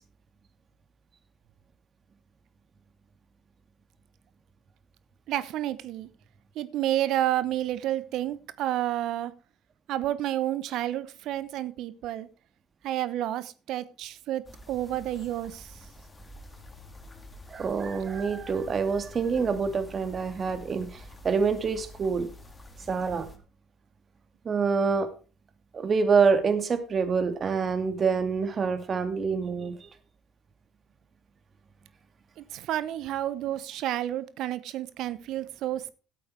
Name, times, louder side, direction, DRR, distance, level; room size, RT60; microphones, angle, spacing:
voice 1, 5.3-6.1 6.6-9.3 9.9-12.3 12.8-15.6 32.5-35.9, right 13 dB, 65° right, 1.0 m, -30 dB
sound 1, 14.4-23.4, left 1 dB, 20° left, 2.9 m, -48 dB
voice 2, 17.5-22.3 22.9-23.3 24.4-25.1 25.7-29.9, right 5 dB, 40° right, 2.3 m, -26 dB
12.5 x 8.5 x 4.7 m
supercardioid pair, 75°, 0 cm